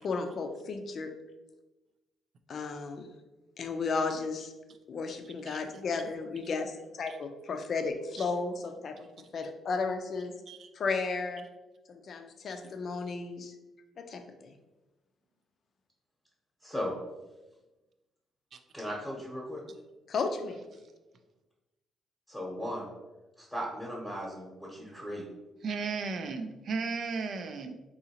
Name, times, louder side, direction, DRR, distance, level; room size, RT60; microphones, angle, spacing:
voice 1, 0.0-1.1 2.5-3.1 3.6-4.5 4.9-9.1 9.3-10.3 10.7-11.5 11.9-13.5 14.0-14.5 20.1-20.6, left 4 dB, 55° left, 6 dB, 0.4 m, -34 dB
voice 2, 16.6-16.9 18.7-19.6 22.3-22.9 23.4-25.2, equal, 5° left, -5 dB, 0.9 m, -37 dB
voice 3, 25.6-27.7, right 4 dB, 60° right, 7 dB, 0.3 m, -35 dB
3.8 x 2.8 x 2.8 m, 1.1 s
cardioid pair, 90°, 0 cm